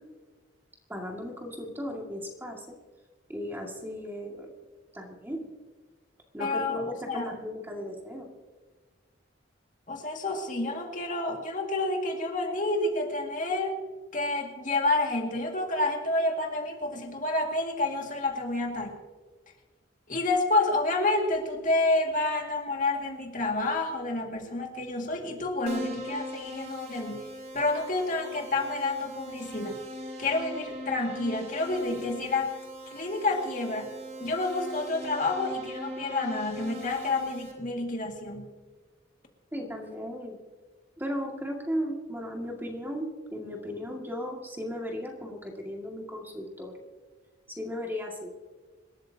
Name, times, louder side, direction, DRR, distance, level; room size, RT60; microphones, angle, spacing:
voice 1, 0.9-2.8 3.3-4.5 4.9-5.5 6.3-8.3 39.5-40.4 41.0-46.8 47.5-48.3, equal, 10° right, 0 dB, 2.1 m, -36 dB
voice 2, 6.4-7.3 9.9-13.8 14.1-19.0 20.1-27.3 27.5-29.8 30.2-32.5 32.9-33.9 34.2-38.5, left 2 dB, 40° left, 2 dB, 2.1 m, -29 dB
Keyboard (musical), 25.7-37.5, equal, 35° right, 2.9 m, -40 dB
26.5 x 13.0 x 2.8 m, 1.4 s
head